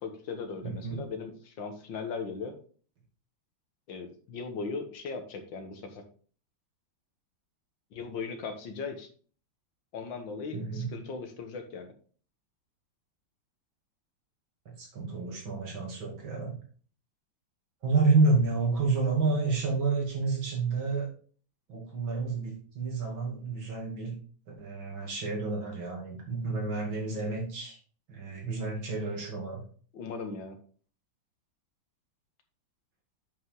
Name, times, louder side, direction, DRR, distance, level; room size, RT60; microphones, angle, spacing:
voice 1, 0.0-2.6 3.9-6.0 7.9-9.1 9.9-11.9 29.9-30.6, left 4 dB, 75° left, 6 dB, 2.0 m, -38 dB
voice 2, 0.6-1.0 10.5-10.9 14.8-16.6 17.8-21.1 21.7-24.2 24.6-27.8 28.1-29.6, right 3 dB, 80° right, -1 dB, 3.3 m, -29 dB
8.0 x 5.7 x 3.8 m, 0.43 s
omnidirectional pair, 2.1 m